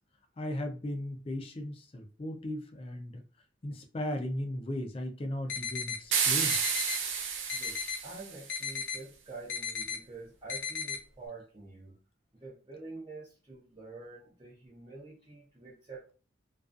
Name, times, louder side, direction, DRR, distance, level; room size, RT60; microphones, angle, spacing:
voice 1, 0.4-3.2 3.6-6.6, left 1 dB, 30° left, 5 dB, 0.4 m, -36 dB
sound 1, 5.5-6.0 6.5-7.0 7.5-8.0 8.5-9.0 9.5-10.0 10.5-11.0, left 7 dB, 80° left, 0.6 m, -35 dB
sound 2, 6.1-8.5, right 6 dB, 85° right, 0.6 m, -31 dB
voice 2, 8.0-12.0 12.3-16.1, right 3 dB, 25° right, -6 dB, 0.6 m, -47 dB
2.3 x 2.3 x 2.4 m, 0.36 s
head